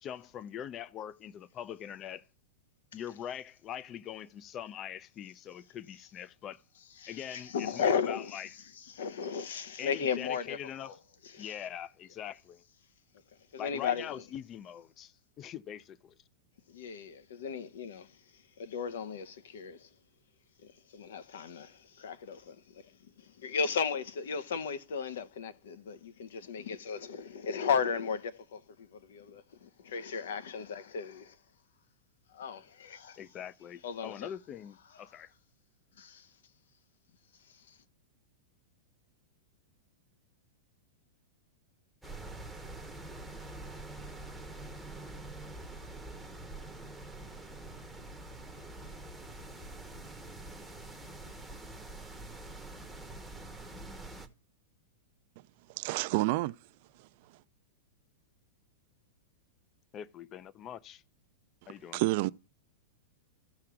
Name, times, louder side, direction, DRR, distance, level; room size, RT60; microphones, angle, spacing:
voice 1, 0.0-2.3 2.9-6.6 7.1-8.5 9.8-11.0 11.4-12.6 13.6-16.2 33.2-35.3 59.9-61.0 61.7-62.0, left 10 dB, 25° left, 0.4 m, -43 dB
voice 2, 7.0-8.4 8.7-11.0 11.2-11.6 13.5-14.2 16.7-19.9 20.6-31.4 32.3-33.2 33.8-34.3 36.0-36.3 37.4-37.8, left 6 dB, 80° left, 0.8 m, -36 dB
sound 1, 42.0-54.3, right 2 dB, ahead, 0.8 m, -45 dB
voice 3, 55.8-56.5 61.9-62.3, right 21 dB, 50° right, 0.3 m, -28 dB
16.0 x 5.7 x 2.3 m
supercardioid pair, 150°, 0 cm